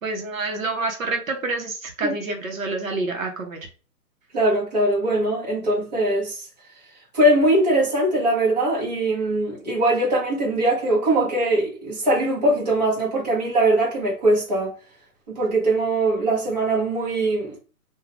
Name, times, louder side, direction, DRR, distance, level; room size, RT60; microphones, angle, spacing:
voice 1, 0.0-3.6, right 3 dB, 55° right, 0.8 m, -28 dB
voice 2, 4.3-6.4 7.1-14.7 15.3-17.6, right 1 dB, 25° right, 0.8 m, -21 dB
2.4 x 2.3 x 3.2 m
hypercardioid pair, 175°, 48 cm